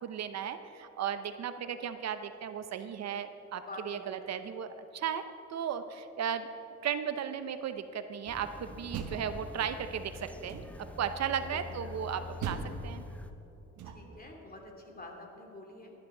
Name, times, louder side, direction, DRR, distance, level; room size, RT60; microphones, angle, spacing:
voice 1, 0.0-5.2 5.5-6.5 6.8-13.0, right 8 dB, 60° right, 10 dB, 0.7 m, -36 dB
voice 2, 3.5-4.2 11.2-11.6 13.8-15.9, left 2 dB, 30° left, 1 dB, 2.7 m, -47 dB
sound 1, 8.3-13.3, left 3 dB, 5° left, 0.8 m, -46 dB
Door, 8.7-9.9 10.5-11.0 12.4-14.3, right 5 dB, 80° right, 1.1 m, -41 dB
17.0 x 11.5 x 3.8 m, 3.0 s
cardioid pair, 90°, 30 cm